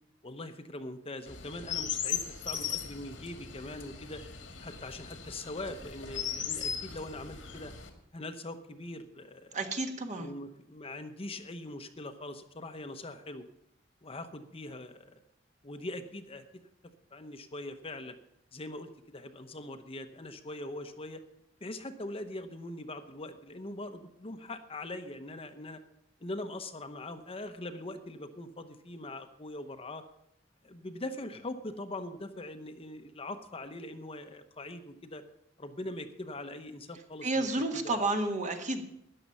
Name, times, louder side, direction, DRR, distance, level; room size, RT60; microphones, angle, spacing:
voice 1, 0.2-4.2 4.6-7.7 8.1-9.5 10.2-13.4 14.0-15.2 15.6-16.4 17.1-18.2 18.5-21.2 21.6-25.8 26.2-30.0 30.6-35.2 35.6-38.0, left 1 dB, 30° left, 8 dB, 0.9 m, -42 dB
Chirp tweet, 1.3-7.9, left 8 dB, 85° left, 2.0 m, -38 dB
voice 2, 9.5-10.3 37.2-38.8, right 2 dB, 40° right, 5 dB, 1.6 m, -31 dB
13.5 x 10.0 x 5.5 m, 0.77 s
head